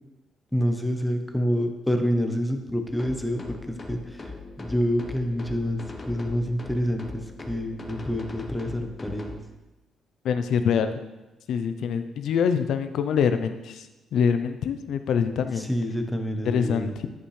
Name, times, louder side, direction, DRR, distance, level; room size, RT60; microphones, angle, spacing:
voice 1, 0.5-4.3 4.6-9.4 15.6-16.9, equal, 5° left, 5 dB, 0.9 m, -27 dB
sound 1, 3.0-9.4, left 3 dB, 30° left, 1.1 m, -40 dB
voice 2, 10.2-11.0 11.5-13.9 14.1-15.7 16.5-17.1, left 7 dB, 75° left, 9 dB, 0.6 m, -25 dB
10.5 x 5.5 x 3.3 m, 1.1 s
cardioid pair, 90°, 0 cm